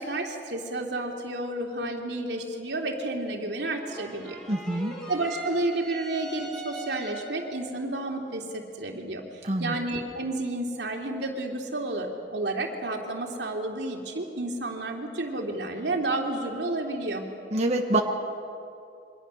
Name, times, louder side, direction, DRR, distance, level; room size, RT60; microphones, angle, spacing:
voice 1, 0.0-4.4 5.1-9.2 9.6-17.3, right 2 dB, 75° right, 2 dB, 3.0 m, -31 dB
sound 1, 3.7-7.6, right 2 dB, 5° left, 4.4 m, -41 dB
voice 2, 4.5-4.9 9.4-9.7 17.5-18.0, right 1 dB, 40° right, 2 dB, 1.4 m, -25 dB
28.0 x 24.0 x 6.5 m, 2.6 s
head